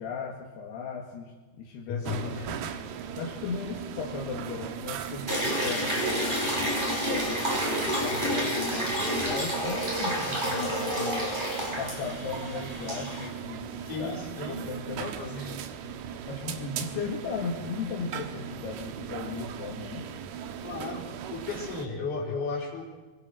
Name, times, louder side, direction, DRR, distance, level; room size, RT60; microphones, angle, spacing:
voice 1, 0.0-2.6 2.9-11.3 11.8-15.5 16.3-20.1, left 5 dB, 80° left, -1 dB, 3.8 m, -37 dB
voice 2, 1.9-2.7 13.8-14.7 15.0-15.6 20.6-21.1 21.3-22.8, left 4 dB, 55° left, -2 dB, 5.4 m, -35 dB
sound 1, 2.0-21.9, right 8 dB, 80° right, 3.0 m, -38 dB
sound 2, 5.3-13.3, equal, 10° right, 4.2 m, -29 dB
23.5 x 21.5 x 6.3 m, 1.3 s
omnidirectional pair, 4.6 m